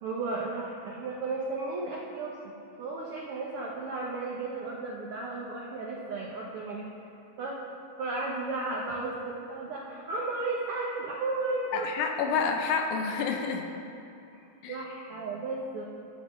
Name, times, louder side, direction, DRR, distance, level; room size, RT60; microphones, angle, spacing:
voice 1, 0.0-2.3 2.8-6.9 7.4-7.6 8.0-11.9 14.3-15.8, right 3 dB, 80° right, -3 dB, 1.2 m, -34 dB
voice 2, 11.7-13.7 14.6-14.8, left 5 dB, 75° left, 3 dB, 1.9 m, -29 dB
13.5 x 7.2 x 3.1 m, 2.8 s
omnidirectional pair, 3.6 m